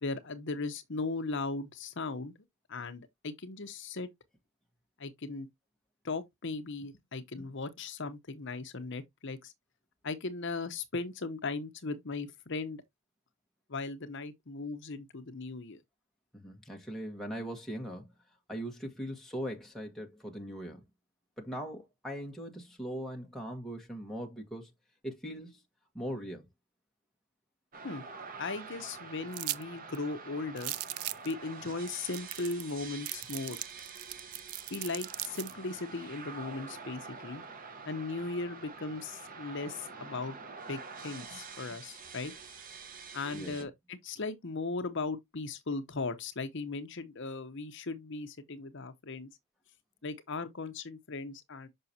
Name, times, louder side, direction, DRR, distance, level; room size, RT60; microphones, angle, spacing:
voice 1, 0.0-2.3 2.7-4.1 5.0-5.5 6.0-9.5 10.0-12.8 13.7-15.8 27.8-28.1 28.4-30.7 31.2-33.6 34.7-37.4 37.8-40.4 40.7-42.3 43.1-49.3 50.0-51.7, left 3 dB, 55° left, 0.9 m, -37 dB
voice 2, 16.3-18.1 18.5-20.8 21.4-24.7 25.0-25.6 25.9-26.5 43.3-43.5, equal, ahead, 1.4 m, -40 dB
sound 1, 27.7-43.6, right 5 dB, 40° right, 1.1 m, -47 dB
sound 2, 29.3-29.6 29.9-30.0 30.6-31.3 31.9-32.0 32.1-32.7 33.1-35.5, right 15 dB, 75° right, 0.5 m, -37 dB
6.6 x 5.8 x 2.8 m
head